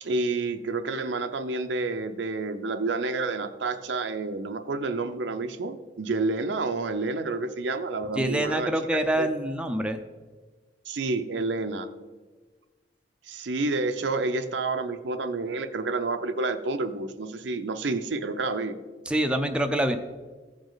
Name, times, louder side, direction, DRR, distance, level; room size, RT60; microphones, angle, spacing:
voice 1, 0.0-9.3 10.9-11.9 13.3-18.8, right 3 dB, 75° right, 9 dB, 0.6 m, -29 dB
voice 2, 8.1-10.0 19.1-20.0, right 1 dB, 5° right, 5 dB, 0.5 m, -26 dB
15.0 x 5.1 x 3.9 m, 1.3 s
head